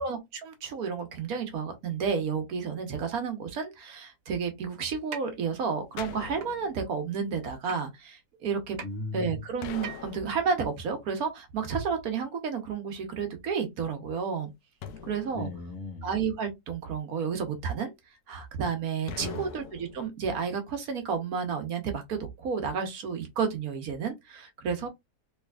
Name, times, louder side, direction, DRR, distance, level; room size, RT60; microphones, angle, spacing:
voice 1, 0.0-8.8 9.1-14.5 15.0-15.5 16.0-17.9 18.3-24.9, right 6 dB, 70° right, 1.3 m, -31 dB
sound 1, 5.1-5.2 6.4-6.5 7.7-7.8 8.8-8.9 9.8-10.2, right 7 dB, 55° right, 0.7 m, -38 dB
sound 2, 6.0-7.1 9.6-10.9 14.8-16.2 19.1-20.1, left 7 dB, 85° left, 1.1 m, -43 dB
voice 2, 8.8-9.4 15.3-16.1 19.2-19.5, left 2 dB, 55° left, 1.2 m, -36 dB
3.3 x 3.2 x 2.3 m
omnidirectional pair, 1.6 m